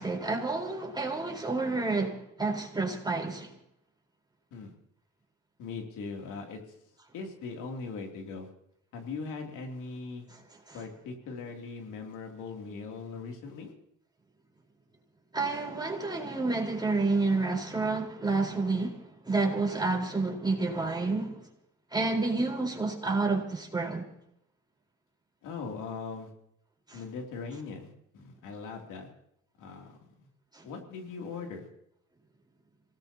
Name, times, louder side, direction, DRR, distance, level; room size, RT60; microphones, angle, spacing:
voice 1, 0.0-3.5 10.3-10.4 10.7-10.8 15.3-21.4 21.9-24.1 26.9-27.0 30.5-30.6, right 3 dB, 15° right, 4.4 m, -29 dB
voice 2, 5.6-6.6 7.1-8.5 8.9-10.2 10.7-13.7 25.4-26.3 26.9-29.1 29.6-30.3 30.6-31.7, left 4 dB, 90° left, 3.0 m, -40 dB
27.0 x 18.0 x 2.9 m
cardioid pair, 90°, 30 cm